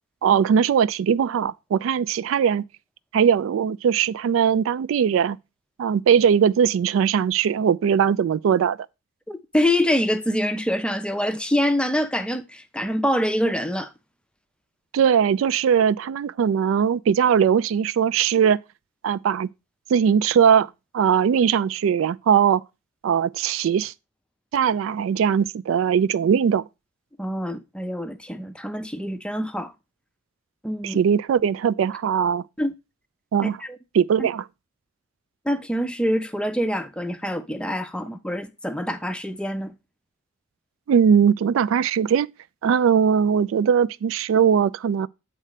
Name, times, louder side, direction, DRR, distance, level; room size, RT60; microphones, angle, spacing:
voice 1, 0.2-2.6 3.1-5.4 5.8-8.8 14.9-18.6 19.0-19.5 19.9-20.7 20.9-22.6 23.0-23.9 24.5-26.6 30.8-32.4 33.3-33.6 33.9-34.5 40.9-42.3 42.6-45.1, right 7 dB, 75° right, 0.3 m, -20 dB
voice 2, 9.3-13.9 27.2-29.7 30.6-31.0 32.6-32.7 33.4-33.8 34.2-34.3 35.5-39.7, equal, 5° left, 0.5 m, -25 dB
8.6 x 3.3 x 4.9 m
head